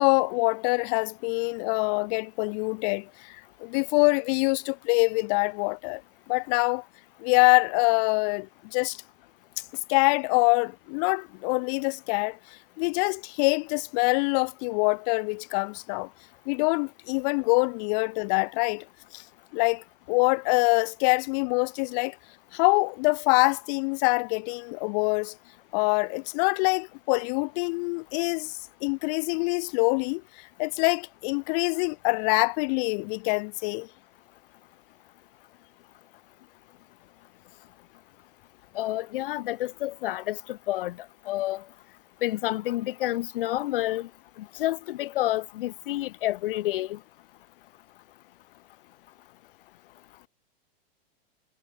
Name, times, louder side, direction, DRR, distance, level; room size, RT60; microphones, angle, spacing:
voice 1, 0.0-6.0 6.3-6.8 7.2-9.0 9.9-12.4 12.8-16.1 16.5-18.8 19.1-19.2 19.5-22.2 22.5-25.3 25.7-33.9, left 37 dB, 40° left, 1.1 m, -25 dB
voice 2, 38.7-40.9 41.3-41.6 42.2-44.1 44.6-47.0, left 15 dB, 60° left, 1.1 m, -29 dB
hypercardioid pair, 140°, 30 cm